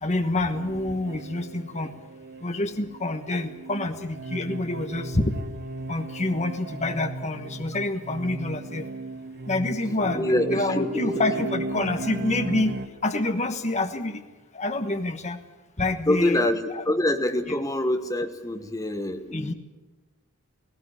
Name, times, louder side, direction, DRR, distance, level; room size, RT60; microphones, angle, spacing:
voice 1, 0.0-1.9 2.4-5.3 5.9-8.8 9.5-12.7 13.0-14.2 14.5-15.4 15.8-16.4 16.7-16.8 19.3-19.5, left 2 dB, 30° left, 7 dB, 1.2 m, -27 dB
sound 1, 0.5-12.9, right 1 dB, 45° right, 1.0 m, -36 dB
voice 2, 10.1-11.1 16.1-19.5, left 1 dB, 15° left, 7 dB, 1.4 m, -25 dB
18.0 x 17.5 x 9.8 m, 1.2 s
head